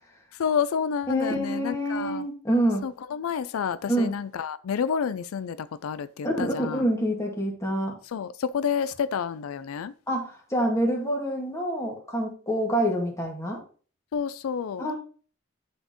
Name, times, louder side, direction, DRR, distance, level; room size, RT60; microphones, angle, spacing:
voice 1, 0.3-2.2 2.8-6.8 8.1-9.9 14.1-14.9, left 7 dB, 85° left, 0.4 m, -29 dB
voice 2, 1.1-2.9 3.9-4.2 6.2-8.0 10.1-13.6 14.8-14.9, right 1 dB, 15° left, 1.9 m, -26 dB
11.0 x 4.3 x 3.0 m
head